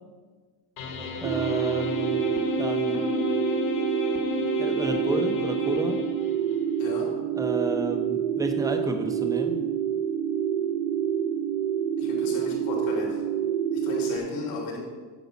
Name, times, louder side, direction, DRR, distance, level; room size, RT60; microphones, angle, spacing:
sound 1, 0.8-6.6, left 6 dB, 45° left, 1.4 m, -32 dB
voice 1, 1.2-2.2 2.6-3.0 4.6-6.0 7.3-9.6, right 2 dB, 10° right, 6 dB, 0.5 m, -31 dB
sound 2, 1.2-14.2, right 8 dB, 60° right, 0.6 m, -27 dB
voice 2, 12.0-13.2 13.8-14.8, left 3 dB, 75° left, -1 dB, 3.4 m, -34 dB
9.3 x 5.1 x 7.0 m, 1.4 s
cardioid pair, 160°, 46 cm